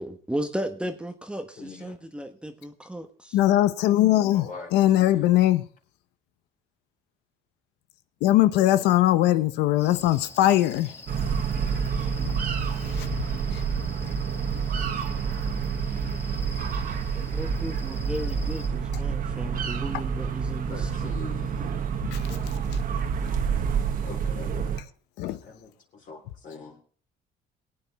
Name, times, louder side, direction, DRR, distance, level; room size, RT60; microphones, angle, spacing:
voice 1, 0.0-3.4 11.6-12.3 17.1-21.1, equal, 5° right, 1.2 m, -35 dB
voice 2, 1.6-2.0 4.1-5.3 20.7-21.9 24.0-24.8 25.4-26.8, left 4 dB, 55° left, 3.6 m, -43 dB
voice 3, 3.3-5.7 8.2-10.9 11.3-11.4 12.2-12.3 12.8-13.2 13.5-13.6 22.1-22.5 23.3-23.4 25.2-25.4, left 14 dB, 90° left, 0.9 m, -21 dB
sound 1, 9.8-18.7, left 2 dB, 15° left, 1.7 m, -46 dB
sound 2, 11.1-24.8, right 6 dB, 55° right, 1.6 m, -28 dB
22.5 x 8.9 x 3.5 m
cardioid pair, 110°, 17 cm